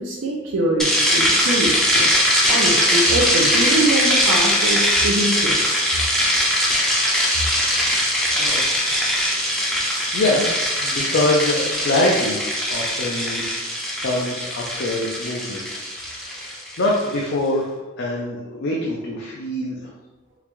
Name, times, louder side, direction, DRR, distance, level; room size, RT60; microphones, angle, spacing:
voice 1, 0.0-2.1 2.5-5.7, right 1 dB, 75° right, -4 dB, 0.5 m, -23 dB
sound 1, 0.8-17.1, equal, ahead, 0.5 m, -21 dB
voice 2, 8.3-9.0 9.7-10.5 10.8-12.4 12.7-13.4 13.7-15.7 16.2-19.9, left 1 dB, 60° left, -3 dB, 0.5 m, -24 dB
3.8 x 2.1 x 3.0 m, 1.1 s
head